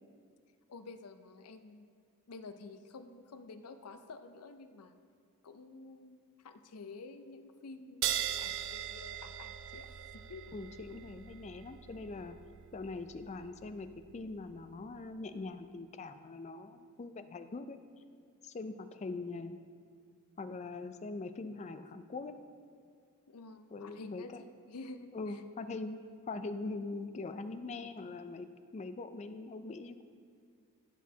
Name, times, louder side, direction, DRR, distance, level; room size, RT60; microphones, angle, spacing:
voice 1, 0.7-1.9 2.3-5.0 5.4-6.2 6.4-10.4 23.3-25.4, left 3 dB, 85° left, 9 dB, 0.5 m, -50 dB
sound 1, 8.0-15.0, right 10 dB, 60° right, 0.4 m, -41 dB
voice 2, 10.5-12.4 12.7-13.9 14.1-17.8 18.4-19.6 20.4-22.4 23.7-24.4 25.1-26.0 26.3-28.5 28.7-30.0, left 3 dB, 30° left, 10 dB, 0.3 m, -42 dB
14.5 x 6.1 x 2.8 m, 2.1 s
head